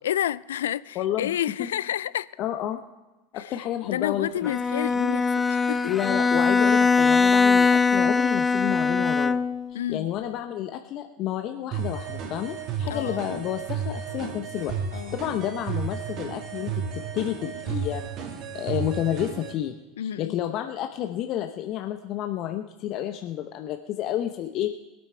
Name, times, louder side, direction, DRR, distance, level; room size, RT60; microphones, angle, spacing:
voice 1, 0.0-2.3 3.3-3.4 3.8-5.9 9.7-10.1 12.9-13.4 14.9-15.2 16.1-16.2 20.0-20.3, left 11 dB, 80° left, 0.4 m, -30 dB
voice 2, 0.9-1.7 2.4-2.8 3.3-4.5 5.8-9.4 9.7-14.7 15.1-16.7 17.1-18.1 18.5-24.7, left 11 dB, 50° left, 0.8 m, -30 dB
Bowed string instrument, 4.4-9.7, left 4 dB, 15° left, 0.6 m, -21 dB
sound 1, 11.7-19.5, right 6 dB, 50° right, 2.4 m, -33 dB
21.0 x 8.8 x 4.5 m
hypercardioid pair, 85°, 0 cm